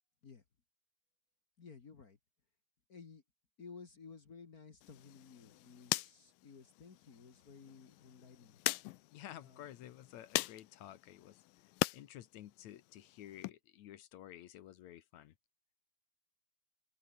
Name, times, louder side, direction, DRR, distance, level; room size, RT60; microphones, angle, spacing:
voice 1, 1.6-2.2 2.9-3.2 3.6-8.6 9.4-9.7, left 5 dB, 40° left, 1.4 m, -55 dB
sound 1, 4.8-12.0 12.4-13.5, left 20 dB, 85° left, 2.4 m, -41 dB
voice 2, 9.1-11.4 11.9-15.3, left 12 dB, 65° left, 2.1 m, -52 dB
omnidirectional pair, 3.9 m